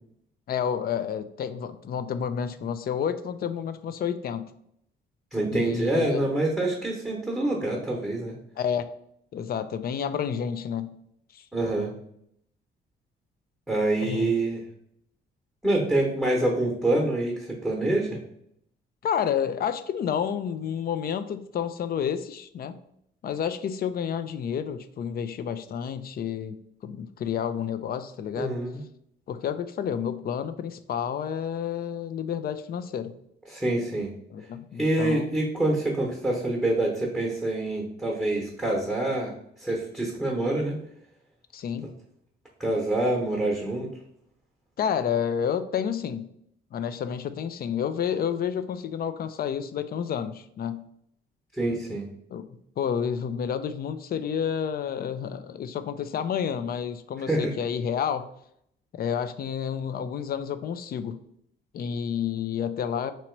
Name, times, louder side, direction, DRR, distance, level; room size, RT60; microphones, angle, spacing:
voice 1, 0.5-4.5 5.5-6.3 8.6-8.8 9.3-11.0 11.3-11.4 14.0-14.4 19.0-22.8 23.2-26.6 26.8-28.6 29.3-33.1 34.3-35.4 41.5-41.9 44.8-46.3 46.7-50.9 52.3-52.5 52.8-58.3 58.9-61.2 61.7-63.1, left 8 dB, 50° left, 11 dB, 0.4 m, -30 dB
voice 2, 5.3-8.3 11.5-11.9 13.7-14.6 15.6-18.2 28.4-28.8 33.5-34.1 34.8-39.3 39.6-40.8 42.6-43.9 51.5-52.1 57.3-57.5, right 2 dB, 5° right, -1 dB, 0.9 m, -26 dB
3.0 x 2.9 x 4.5 m, 0.72 s
cardioid pair, 90°, 20 cm